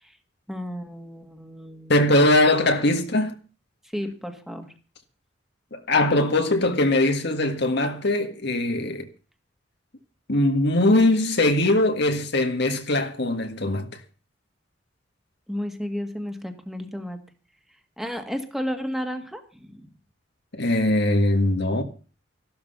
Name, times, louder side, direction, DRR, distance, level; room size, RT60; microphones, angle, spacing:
voice 1, 0.5-2.1 3.9-4.7 15.5-17.2 18.0-19.9, equal, ahead, 1.9 m, -32 dB
voice 2, 1.9-3.4 5.7-9.1 10.3-13.9 20.5-21.8, left 1 dB, 60° left, 1.8 m, -21 dB
14.0 x 12.5 x 5.5 m
head